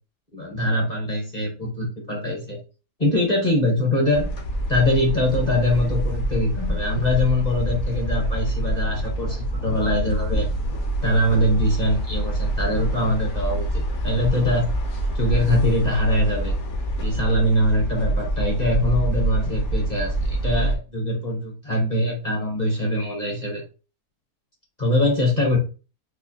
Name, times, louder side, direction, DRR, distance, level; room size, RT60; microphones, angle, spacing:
voice 1, 0.3-2.6 3.0-4.3 4.7-10.5 11.0-14.7 15.1-16.5 17.0-23.6 24.8-25.6, left 1 dB, 35° left, -1 dB, 0.7 m, -23 dB
sound 1, 4.1-20.8, right 1 dB, 55° left, 1.0 m, -26 dB
4.4 x 2.4 x 2.7 m, 0.32 s
omnidirectional pair, 1.7 m